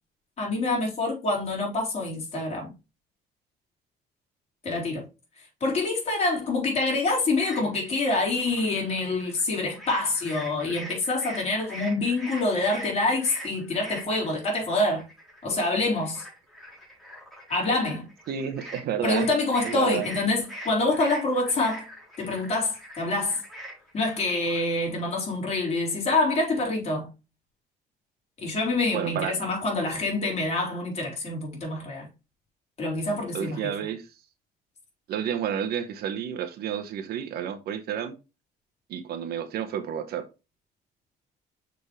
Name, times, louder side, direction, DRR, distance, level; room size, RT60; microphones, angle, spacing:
voice 1, 0.4-2.7 4.6-5.1 5.6-15.1 15.4-16.2 17.5-18.1 19.0-21.9 22.2-23.4 23.9-27.1 28.4-32.1 32.8-33.7, left 2 dB, 40° left, 4.3 m, -26 dB
sound 1, 7.1-9.5 9.7-25.1, right 1 dB, ahead, 3.8 m, -43 dB
voice 2, 18.3-19.3 19.6-20.1 28.9-29.3 33.3-34.0 35.1-38.1 38.9-40.2, right 9 dB, 70° right, 1.1 m, -30 dB
6.4 x 5.3 x 3.2 m
cardioid pair, 110°, 17 cm